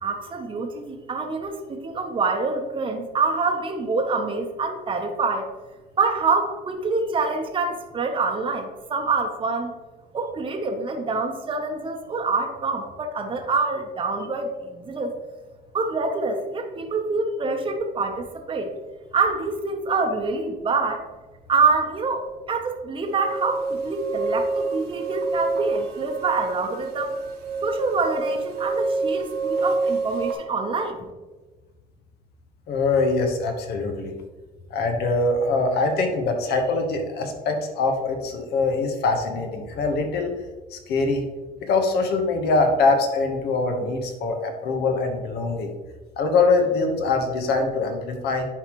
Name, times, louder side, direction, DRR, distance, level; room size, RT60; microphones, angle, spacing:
voice 1, 0.0-5.5 6.0-9.7 10.1-15.1 15.7-18.7 19.1-21.0 21.5-27.1 27.6-31.0, right 4 dB, 30° right, 3 dB, 0.8 m, -26 dB
sound 1, 23.0-30.4, right 3 dB, 70° right, 1.2 m, -27 dB
voice 2, 32.7-34.1 34.7-40.4 40.7-41.2 41.6-45.7 46.2-48.5, left 3 dB, 70° left, 4 dB, 1.2 m, -23 dB
10.0 x 3.9 x 3.1 m, 1.2 s
cardioid pair, 110°, 17 cm